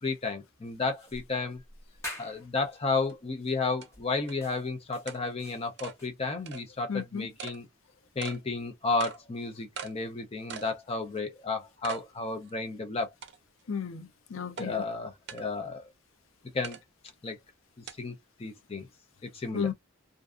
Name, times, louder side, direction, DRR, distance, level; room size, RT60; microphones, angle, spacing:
voice 1, 0.0-1.6 2.2-7.7 8.2-13.1 14.6-15.8 16.5-16.8 17.2-17.4 18.0-18.1 18.4-18.9 19.2-19.7, left 3 dB, 30° left, 0.5 m, -32 dB
sound 1, 1.0-2.6 3.4-3.6 3.9-6.1, left 1 dB, 15° left, 1.0 m, -45 dB
sound 2, 3.1-3.2 3.8-3.9 4.3-4.4 5.1-5.2 5.8-6.0 6.5-6.6 7.4-7.6 8.2-8.4 9.0-9.2 9.8-9.9 10.5-10.7 11.2-11.3 11.8-12.0 12.5-12.6 13.2-13.6 14.6-14.7 15.3-15.4 16.6-16.8 17.9-18.0, right 7 dB, 55° right, 0.5 m, -41 dB
voice 2, 6.9-7.3 13.7-14.8 19.5-19.7, left 6 dB, 85° left, 0.5 m, -33 dB
2.5 x 2.3 x 2.3 m
head